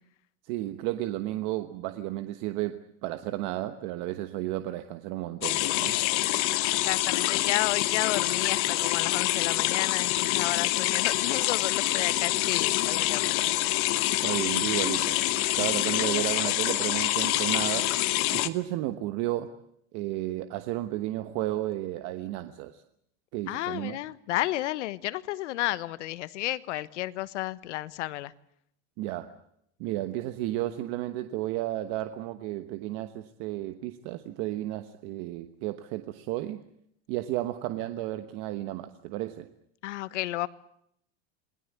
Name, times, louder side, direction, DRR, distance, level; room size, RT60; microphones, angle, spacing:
voice 1, 0.4-5.9 14.2-15.2 15.6-17.9 18.3-19.5 19.9-22.8 23.3-24.0 29.0-29.3 29.8-36.6 37.1-39.5, right 15 dB, 40° right, 10 dB, 1.2 m, -33 dB
sound 1, 5.4-18.5, left 17 dB, 35° left, 1.2 m, -26 dB
voice 2, 6.8-13.5 23.5-28.3 39.8-40.5, left 16 dB, 75° left, 16 dB, 1.4 m, -32 dB
28.0 x 20.5 x 8.4 m, 0.73 s
supercardioid pair, 175°, 36 cm